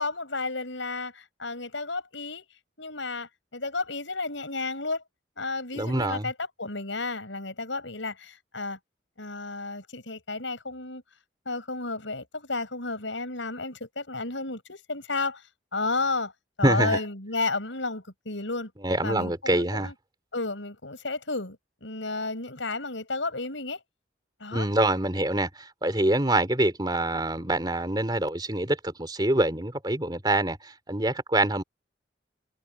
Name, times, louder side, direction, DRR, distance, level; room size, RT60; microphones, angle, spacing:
voice 1, 0.0-2.5 2.8-5.0 5.4-6.3 6.6-8.8 9.2-11.0 11.4-15.4 15.7-16.3 16.6-18.7 19.0-19.9 20.3-23.8 24.4-24.7, left 3 dB, 85° left, 6.6 m, -32 dB
voice 2, 5.8-6.3 16.6-17.0 18.8-19.9 24.5-31.6, right 1 dB, 20° right, 3.3 m, -25 dB
head